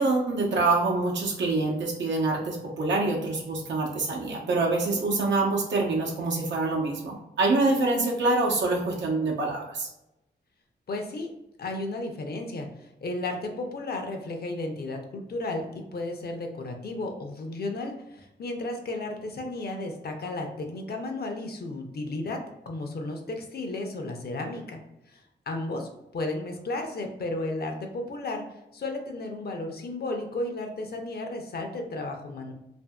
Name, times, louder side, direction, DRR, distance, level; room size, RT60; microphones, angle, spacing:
voice 1, 0.0-9.9, right 3 dB, 90° right, -2 dB, 0.7 m, -25 dB
voice 2, 10.9-11.3 11.6-12.7 13.0-22.4 22.7-24.8 25.1-25.2 25.5-28.4 28.7-32.5, left 2 dB, 60° left, 4 dB, 0.6 m, -33 dB
2.7 x 2.6 x 2.2 m, 0.89 s
cardioid pair, 60°, 18 cm